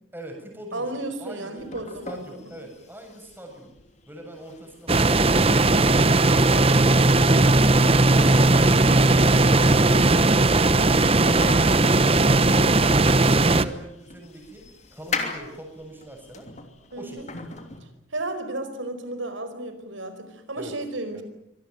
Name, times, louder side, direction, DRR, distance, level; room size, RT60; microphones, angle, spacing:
voice 1, 0.1-0.9 1.2-1.7 2.1-3.7 4.1-6.0 9.2-14.6 14.9-16.5 17.0-17.5 20.6-20.8 21.1-21.2, equal, 10° right, 2 dB, 7.2 m, -43 dB
voice 2, 0.7-2.4 16.9-17.3 17.8-21.2, right 2 dB, 80° right, 9 dB, 4.8 m, -34 dB
sound 1, 1.6-17.8, left 3 dB, 35° left, 3.0 m, -39 dB
sound 2, 4.9-13.6, right 2 dB, 30° right, 1.0 m, -18 dB
25.0 x 20.0 x 9.3 m, 0.82 s
head